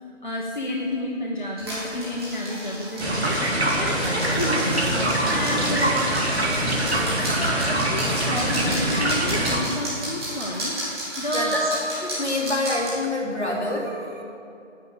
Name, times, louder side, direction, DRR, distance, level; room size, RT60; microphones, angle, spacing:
voice 1, 0.2-6.0 6.6-11.8, left 1 dB, 40° left, -1 dB, 0.9 m, -30 dB
sound 1, 1.6-12.9, right 1 dB, 20° right, 2.5 m, -33 dB
sound 2, 3.0-9.6, right 1 dB, 55° right, 2.0 m, -24 dB
voice 2, 12.2-14.2, left 2 dB, 60° left, -2 dB, 2.5 m, -26 dB
9.5 x 8.3 x 6.9 m, 2.8 s
figure-of-eight pair, 160°, 38 cm